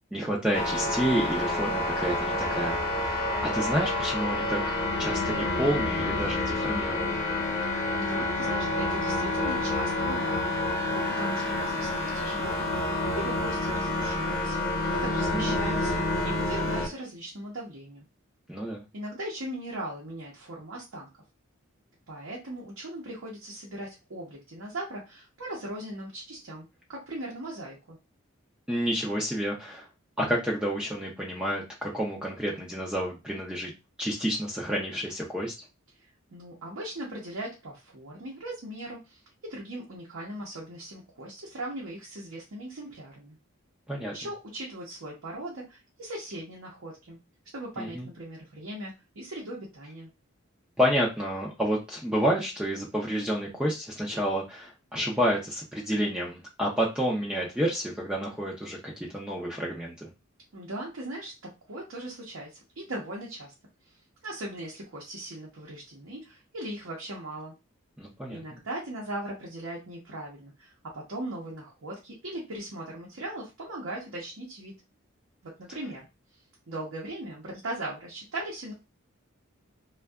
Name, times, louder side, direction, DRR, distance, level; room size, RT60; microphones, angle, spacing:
voice 1, 0.1-7.2 15.3-15.4 18.5-18.8 28.7-29.9 30.2-33.7 34.0-35.5 43.9-44.1 47.8-48.1 50.8-60.1 68.0-68.4, equal, 5° right, -3 dB, 0.4 m, -29 dB
sound 1, 0.5-16.9, left 2 dB, 50° left, 0.9 m, -28 dB
voice 2, 7.6-10.4 10.9-14.6 14.9-18.1 18.9-21.1 22.1-28.0 36.3-43.4 44.1-47.2 47.5-50.1 60.5-63.5 64.2-67.5 68.3-74.7 75.4-76.1 76.7-78.7, right 1 dB, 75° right, -4 dB, 0.7 m, -39 dB
2.6 x 2.3 x 2.2 m, 0.26 s
head